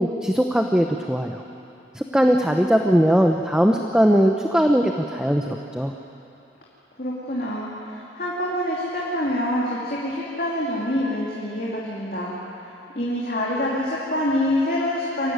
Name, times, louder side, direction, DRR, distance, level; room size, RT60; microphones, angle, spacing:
voice 1, 0.0-1.4 1.9-5.9, equal, 5° right, 3 dB, 0.8 m, -20 dB
voice 2, 7.0-12.3 12.9-15.3, left 1 dB, 55° left, -6 dB, 3.0 m, -26 dB
24.0 x 15.5 x 9.5 m, 2.8 s
head